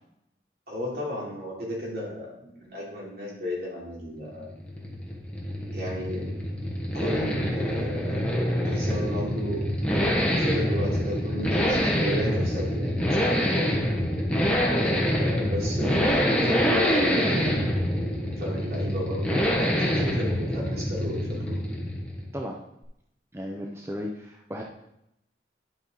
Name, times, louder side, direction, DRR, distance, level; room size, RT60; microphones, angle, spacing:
voice 1, 0.7-4.5 5.7-6.4 6.9-8.4 8.6-9.6 10.3-13.8 15.1-17.6 18.4-21.6, equal, 60° right, -4 dB, 3.1 m, -33 dB
sound 1, 4.3-22.4, equal, 5° left, 1.2 m, -26 dB
voice 2, 23.3-24.6, equal, 15° right, 1 dB, 0.6 m, -35 dB
11.0 x 5.3 x 3.9 m, 0.81 s
head